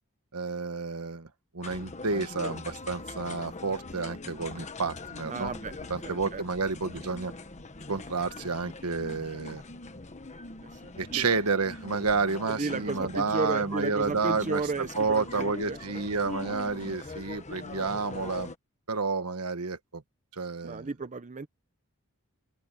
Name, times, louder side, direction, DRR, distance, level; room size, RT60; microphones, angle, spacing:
voice 1, 0.3-1.3 1.5-5.5 5.9-7.3 7.9-9.6 11.0-18.5 18.9-20.0 20.3-20.9, right 4 dB, 75° right, 1.4 m, -30 dB
sound 1, 1.6-18.6, left 3 dB, 30° left, 1.3 m, -42 dB
voice 2, 5.2-5.7 6.0-6.4 10.6-11.3 12.5-15.8 16.5-16.6 20.6-21.5, right 3 dB, 35° right, 0.7 m, -34 dB
open air
head